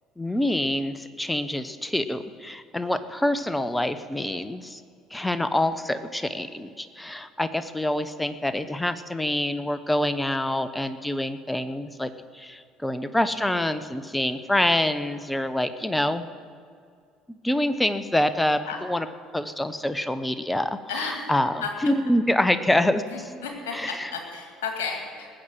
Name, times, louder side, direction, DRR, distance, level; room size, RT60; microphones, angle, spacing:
voice 1, 0.2-4.8 5.1-16.3 17.3-19.1 19.3-23.3 23.7-24.1, left 1 dB, 10° left, 12 dB, 0.9 m, -26 dB
voice 2, 20.9-21.3 21.6-21.7 23.1-25.3, left 5 dB, 65° left, 3 dB, 2.2 m, -33 dB
19.5 x 7.5 x 7.6 m, 2.2 s
figure-of-eight pair, 55°, 0 cm